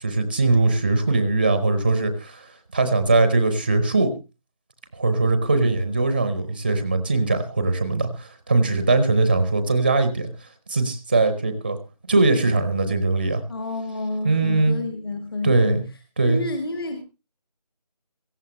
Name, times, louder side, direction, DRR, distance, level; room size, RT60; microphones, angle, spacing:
voice 1, 0.0-2.5 2.7-4.1 4.9-10.3 10.7-11.8 12.1-13.4 14.2-14.8 15.4-15.8 16.2-16.5, right 3 dB, 15° right, 11 dB, 0.7 m, -21 dB
voice 2, 13.5-15.8 16.2-17.0, left 2 dB, 35° left, 6 dB, 1.5 m, -29 dB
17.5 x 15.0 x 3.1 m, 0.28 s
figure-of-eight pair, 165°, 21 cm